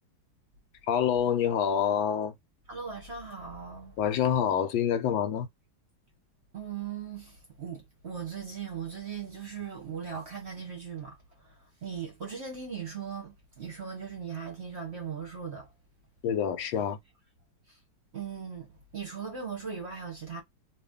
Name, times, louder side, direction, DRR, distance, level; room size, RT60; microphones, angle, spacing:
voice 1, 0.9-2.3 4.0-5.5 16.2-17.0, left 8 dB, 85° left, 1.4 m, -26 dB
voice 2, 2.7-4.0 6.5-15.7 17.7-17.8 18.1-20.4, right 6 dB, 45° right, 1.0 m, -39 dB
3.0 x 2.5 x 3.5 m
omnidirectional pair, 2.0 m